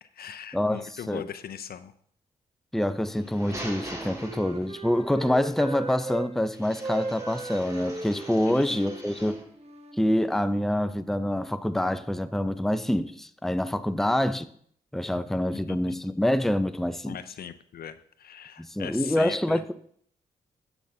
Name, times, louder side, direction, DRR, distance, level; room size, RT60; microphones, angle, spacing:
voice 1, 0.0-1.9 8.5-8.8 14.0-14.2 15.7-16.0 17.1-19.6, left 8 dB, 60° left, 0.6 m, -40 dB
voice 2, 0.5-1.2 2.7-9.4 10.0-14.5 14.9-17.2 18.6-19.7, left 1 dB, ahead, 0.6 m, -26 dB
sound 1, 3.0-5.0 6.5-9.5, right 1 dB, 20° right, 2.4 m, -43 dB
Wind instrument woodwind instrument, 3.7-6.3 6.8-10.6, right 2 dB, 35° right, 1.5 m, -38 dB
11.5 x 6.9 x 2.8 m
hypercardioid pair, 40°, 18 cm